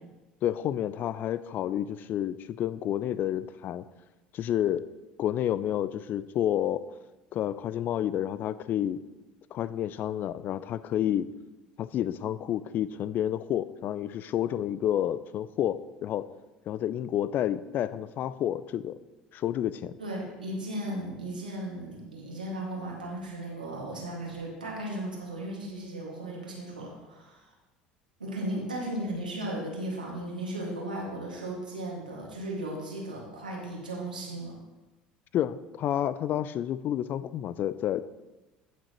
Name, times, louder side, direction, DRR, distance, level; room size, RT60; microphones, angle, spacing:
voice 1, 0.4-3.8 4.3-4.8 5.2-6.8 7.3-9.0 9.5-11.3 11.8-16.3 16.7-19.0 19.3-19.9 35.3-38.0, left 11 dB, 45° left, 16 dB, 0.4 m, -30 dB
voice 2, 20.0-27.5 28.2-34.6, right 1 dB, 85° right, -2 dB, 1.9 m, -36 dB
15.5 x 6.2 x 3.0 m, 1.1 s
figure-of-eight pair, 65°, 4 cm